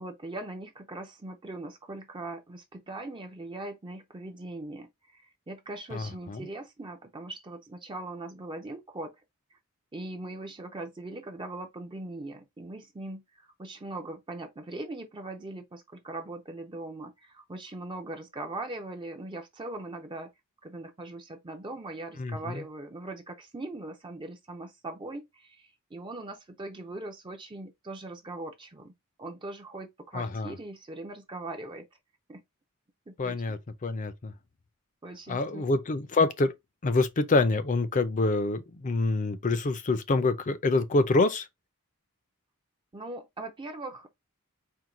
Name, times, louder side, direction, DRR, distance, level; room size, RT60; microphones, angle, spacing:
voice 1, 0.0-9.1 9.9-20.3 20.6-28.9 29.2-31.9 32.3-32.4 33.1-33.4 35.0-35.7 42.9-44.1, right 2 dB, 20° right, 0.5 m, -40 dB
voice 2, 5.9-6.5 22.2-22.6 30.1-30.6 33.2-34.3 35.3-36.5 36.8-41.5, left 3 dB, 35° left, 0.5 m, -26 dB
4.5 x 2.2 x 3.7 m
head